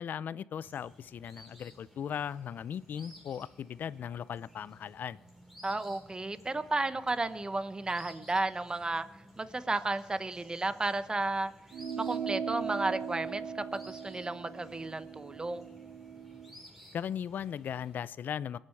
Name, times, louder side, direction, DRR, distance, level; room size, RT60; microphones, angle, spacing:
voice 1, 0.0-5.2 16.9-18.6, left 8 dB, 70° left, 18 dB, 0.5 m, -38 dB
sound 1, 0.6-18.1, equal, 5° right, 4.8 m, -56 dB
voice 2, 5.6-9.1 9.4-11.5 12.0-15.7, right 2 dB, 25° right, 12 dB, 1.0 m, -33 dB
sound 2, 11.7-16.5, right 7 dB, 90° right, 1.7 m, -39 dB
22.5 x 9.0 x 4.7 m, 1.1 s
cardioid pair, 70°, 3 cm